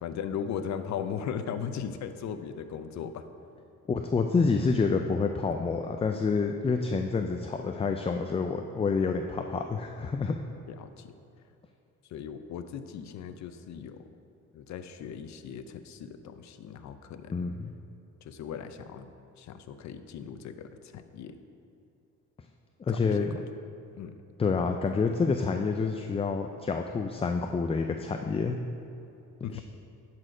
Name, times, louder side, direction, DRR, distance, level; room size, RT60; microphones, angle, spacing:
voice 1, 0.0-3.3 10.7-11.1 12.1-14.1 14.5-17.3 18.2-19.1 19.4-21.4 22.9-23.3 24.0-24.2 29.4-29.6, left 7 dB, 65° left, 9 dB, 0.6 m, -38 dB
voice 2, 3.9-10.4 17.3-17.7 22.8-23.4 24.4-28.6 29.5-29.6, left 4 dB, 20° left, 5 dB, 0.4 m, -28 dB
11.0 x 4.3 x 5.0 m, 2.7 s
cardioid pair, 90°, 30 cm